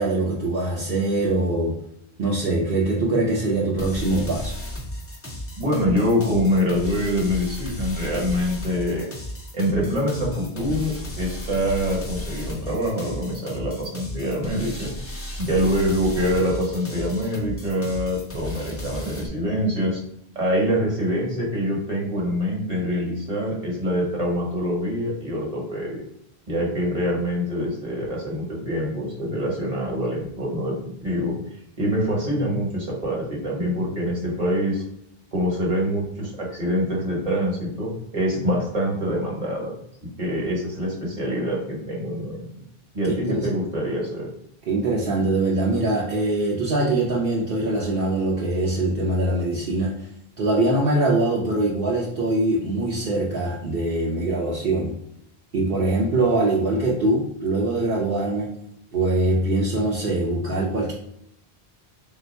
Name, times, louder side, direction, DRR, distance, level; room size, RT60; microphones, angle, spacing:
voice 1, 0.0-1.7 2.2-4.5 43.0-43.5 44.7-50.0 50.4-54.9 55.5-58.5 58.9-60.9, right 2 dB, 65° right, -5 dB, 0.9 m, -23 dB
sound 1, 3.8-19.3, equal, 20° left, 0.4 m, -34 dB
voice 2, 5.6-9.1 9.5-14.9 15.4-20.0 20.3-26.0 26.5-31.3 31.8-34.8 35.3-39.7 40.2-42.5 42.9-44.3, equal, 40° right, -3 dB, 1.2 m, -25 dB
3.4 x 2.5 x 4.1 m, 0.74 s
omnidirectional pair, 1.0 m